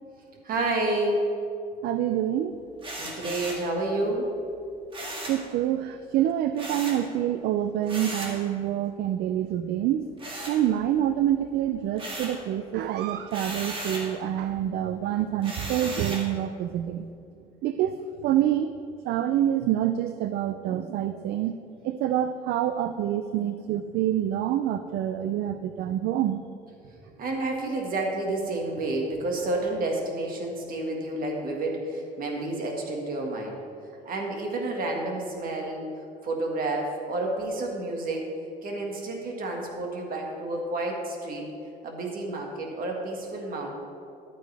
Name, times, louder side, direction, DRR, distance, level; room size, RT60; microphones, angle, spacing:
voice 1, 0.4-1.3 3.0-4.3 27.0-33.6 33.9-35.8 36.2-38.3 38.6-41.5 41.8-43.7, right 2 dB, 55° right, 1 dB, 1.8 m, -30 dB
voice 2, 1.8-2.5 5.3-10.1 10.5-17.0 17.6-18.0 18.2-18.7 19.0-21.5 21.8-26.4, right 11 dB, 75° right, 10 dB, 0.4 m, -26 dB
sound 1, 2.8-3.7 4.9-5.4 6.6-7.0 7.9-8.4 10.2-11.0 11.4-12.4 13.3-14.1 15.4-16.3, right 1 dB, 30° right, 1.9 m, -36 dB
11.5 x 8.9 x 3.4 m, 2.6 s
cardioid pair, 110°, 17 cm